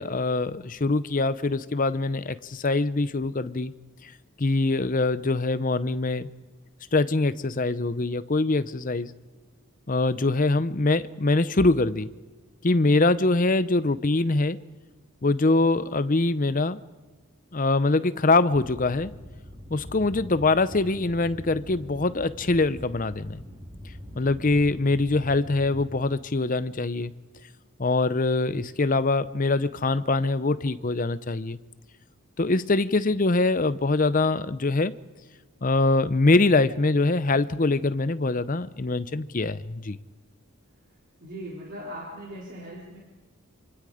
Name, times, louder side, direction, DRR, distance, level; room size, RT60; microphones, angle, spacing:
voice 1, 0.0-3.7 4.4-6.3 6.9-9.1 9.9-12.1 12.6-14.6 15.2-16.8 17.5-19.1 19.7-23.4 24.2-27.1 27.8-31.6 32.4-34.9 35.6-40.0, left 2 dB, 35° left, 0.7 m, -23 dB
sound 1, 18.5-25.9, equal, 25° right, 4.2 m, -43 dB
voice 2, 41.2-43.0, equal, 50° right, 4.0 m, -39 dB
27.5 x 26.0 x 5.0 m
head